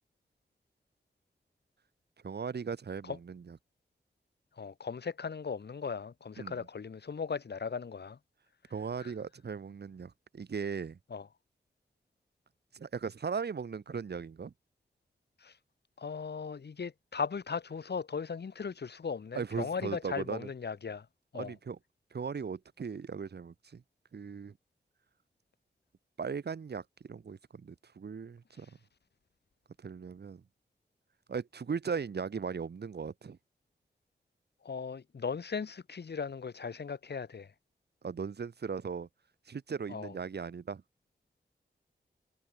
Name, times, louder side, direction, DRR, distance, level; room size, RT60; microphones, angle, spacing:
voice 1, 2.2-3.6 6.4-6.6 8.7-11.0 12.7-14.5 19.3-20.5 21.3-21.8 22.1-23.8 24.1-24.5 26.2-28.7 29.8-30.4 31.3-33.4 38.0-39.1 39.5-40.8, right 6 dB, 70° right, 2.4 m, -38 dB
voice 2, 4.6-8.2 9.0-9.1 11.1-11.3 15.4-15.5 16.0-21.1 21.3-21.5 34.6-37.5 39.9-40.1, left 5 dB, 70° left, 4.1 m, -37 dB
wide cardioid pair, 125°, 18 cm